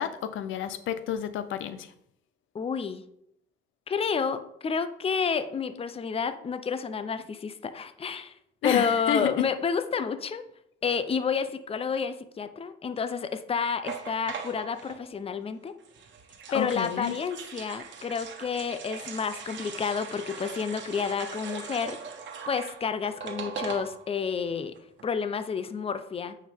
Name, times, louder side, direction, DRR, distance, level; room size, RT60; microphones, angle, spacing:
voice 1, 0.0-1.9 8.6-9.5 16.5-17.2, left 10 dB, 80° left, 0.5 m, -30 dB
voice 2, 2.5-3.0 3.9-8.3 8.6-10.4 10.8-15.7 16.5-22.0 22.5-24.8 25.0-26.4, left 6 dB, 30° left, 0.6 m, -30 dB
sound 1, 13.8-15.0 15.8-24.2 24.5-24.6 24.8-25.1, right 6 dB, 70° right, 1.2 m, -40 dB
9.0 x 4.6 x 3.5 m
cardioid pair, 90°, 20 cm